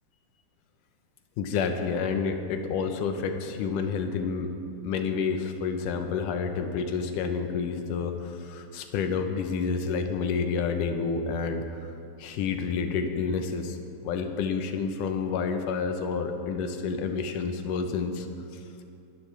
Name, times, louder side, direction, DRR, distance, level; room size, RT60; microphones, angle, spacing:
voice 1, 1.4-4.5 4.8-18.3 18.5-18.6, left 5 dB, 85° left, 6 dB, 2.5 m, -29 dB
21.5 x 12.0 x 3.4 m, 2.6 s
omnidirectional pair, 3.6 m